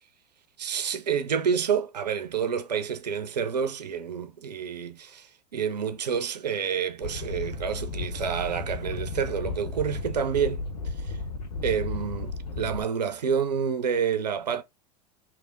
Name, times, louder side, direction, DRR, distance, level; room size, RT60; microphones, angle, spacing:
voice 1, 0.6-11.2 11.6-14.6, right 7 dB, 80° right, 0.6 m, -29 dB
sound 1, 7.0-12.8, left 3 dB, 75° left, 1.0 m, -34 dB
3.4 x 3.0 x 3.9 m
figure-of-eight pair, 85°, 21 cm